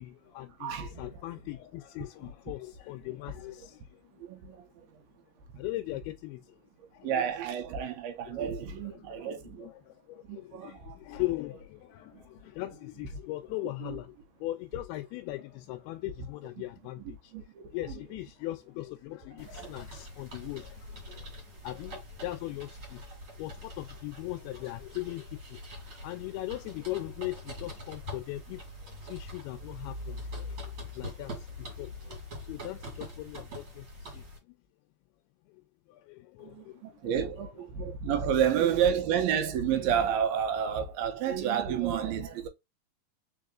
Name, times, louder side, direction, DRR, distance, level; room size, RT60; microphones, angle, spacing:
voice 1, 0.0-4.6 5.5-6.6 6.9-7.1 8.3-8.5 8.9-14.2 14.4-17.3 17.7-23.0 23.4-25.6 26.0-34.6 35.5-35.6 35.9-37.1 37.8-37.9, left 17 dB, 85° left, 2.5 m, -40 dB
voice 2, 0.6-1.0 4.2-4.7 7.0-9.7 10.3-11.0 12.1-12.2 13.8-14.0 17.0-18.0 19.5-19.8 36.4-42.5, right 8 dB, 80° right, 2.4 m, -30 dB
sound 1, 19.4-34.4, left 1 dB, 40° right, 2.3 m, -44 dB
4.8 x 4.7 x 2.4 m
omnidirectional pair, 4.4 m